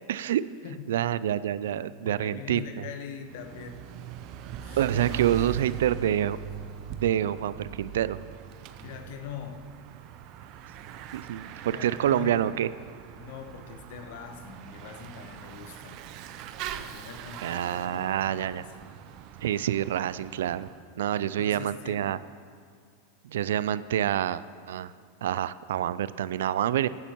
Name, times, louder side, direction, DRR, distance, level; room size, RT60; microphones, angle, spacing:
voice 1, 0.1-0.4 0.9-2.9 4.8-6.4 7.0-8.2 11.1-12.7 17.4-18.6 19.4-20.7 21.0-22.2 23.2-24.9 25.2-26.9, right 11 dB, 75° right, 16 dB, 0.4 m, -27 dB
voice 2, 0.6-1.1 2.0-3.9 4.6-5.6 8.8-9.7 11.6-12.5 13.2-16.1 16.7-18.7 21.2-22.2, left 8 dB, 65° left, 7 dB, 1.2 m, -43 dB
Bicycle / Mechanisms, 3.2-20.8, right 9 dB, 50° right, 0.7 m, -41 dB
22.5 x 9.7 x 3.0 m, 2.1 s
hypercardioid pair, 100°, 0 cm